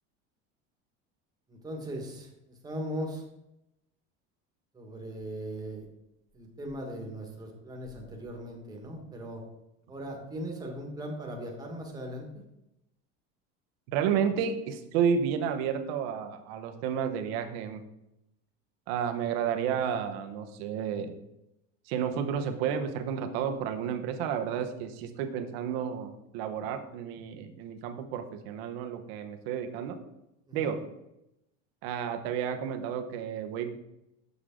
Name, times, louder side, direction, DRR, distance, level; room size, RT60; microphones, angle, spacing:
voice 1, 1.5-3.2 4.7-5.9 6.3-9.4 9.9-12.3 14.0-14.2 16.7-16.8 30.5-30.7, equal, 10° right, 1 dB, 1.4 m, -39 dB
voice 2, 13.9-17.8 18.9-21.2 21.9-30.0 30.5-30.8 31.8-33.8, right 7 dB, 80° right, 7 dB, 1.0 m, -31 dB
6.8 x 6.3 x 3.7 m, 0.86 s
cardioid pair, 140°, 30 cm